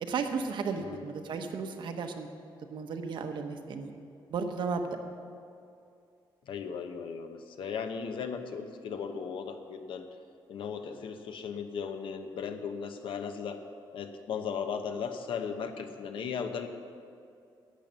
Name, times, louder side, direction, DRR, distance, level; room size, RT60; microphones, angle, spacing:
voice 1, 0.0-2.3 2.7-3.9 4.3-4.9, right 5 dB, 65° right, 5 dB, 1.0 m, -34 dB
voice 2, 6.5-10.0 10.5-13.6 13.9-16.7, left 6 dB, 75° left, 7 dB, 0.9 m, -36 dB
11.5 x 9.0 x 6.9 m, 2.5 s
wide cardioid pair, 160°, 9 cm